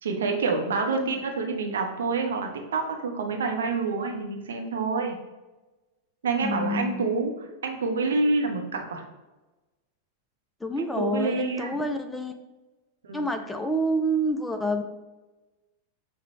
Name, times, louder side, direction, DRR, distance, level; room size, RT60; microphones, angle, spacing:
voice 1, 0.0-5.1 6.2-7.3 7.6-9.0 10.8-11.8 13.0-13.3, right 4 dB, 65° right, 3 dB, 0.6 m, -27 dB
voice 2, 6.4-7.0 10.6-12.3 13.1-14.8, right 1 dB, 5° left, 6 dB, 0.3 m, -28 dB
5.9 x 2.1 x 3.1 m, 1.1 s
figure-of-eight pair, 90°, 0 cm